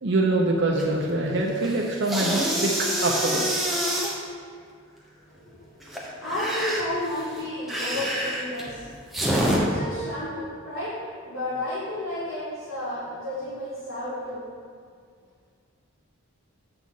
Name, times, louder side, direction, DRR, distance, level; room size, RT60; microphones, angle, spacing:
voice 1, 0.0-2.7 3.0-3.7, right 2 dB, 55° right, -1 dB, 0.7 m, -24 dB
sound 1, 0.8-1.1 1.5-4.1 5.8-9.6, equal, ahead, 0.9 m, -27 dB
voice 2, 5.2-8.9 9.5-11.0 11.2-14.5, left 1 dB, 75° left, -11 dB, 2.1 m, -32 dB
7.8 x 4.1 x 6.3 m, 2.1 s
head